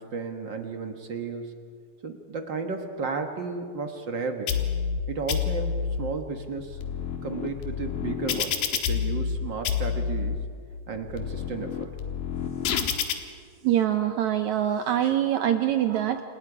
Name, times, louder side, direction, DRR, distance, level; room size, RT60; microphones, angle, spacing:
voice 1, 0.0-1.5 2.0-4.7 5.1-6.8 7.2-10.4 10.9-12.0, right 4 dB, 50° right, 5 dB, 1.4 m, -33 dB
sound 1, 4.5-5.0 5.3-6.0 6.6-9.4 9.7-10.4 10.9-13.1, left 7 dB, 85° left, 3.2 m, -28 dB
voice 2, 13.6-16.2, right 11 dB, 70° right, 7 dB, 2.0 m, -24 dB
29.0 x 27.0 x 4.9 m, 2.1 s
omnidirectional pair, 3.8 m